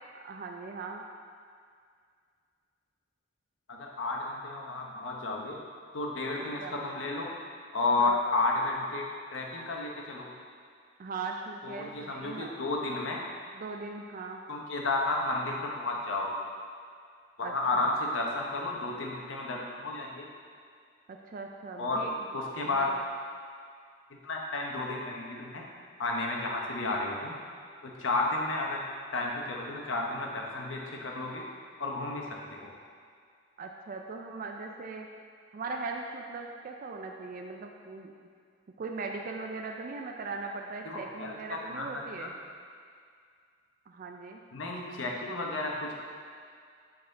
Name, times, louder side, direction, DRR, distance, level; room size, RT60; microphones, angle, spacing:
voice 1, 0.1-1.0 6.6-6.8 8.0-8.2 11.0-12.5 13.5-14.4 17.4-17.9 21.1-22.3 22.7-23.0 33.6-35.1 35.5-38.1 38.8-42.4 43.9-44.4 44.7-44.8, right 4 dB, 45° right, 2 dB, 0.3 m, -39 dB
voice 2, 3.7-5.6 5.9-7.3 7.7-10.3 11.6-13.2 14.5-16.4 17.4-20.3 21.8-22.1 22.3-22.9 24.2-25.7 26.0-27.4 27.8-28.8 29.1-31.4 31.8-32.7 40.8-42.3 44.5-45.9, left 2 dB, 75° left, -1 dB, 0.9 m, -32 dB
7.7 x 4.1 x 4.0 m, 2.2 s
head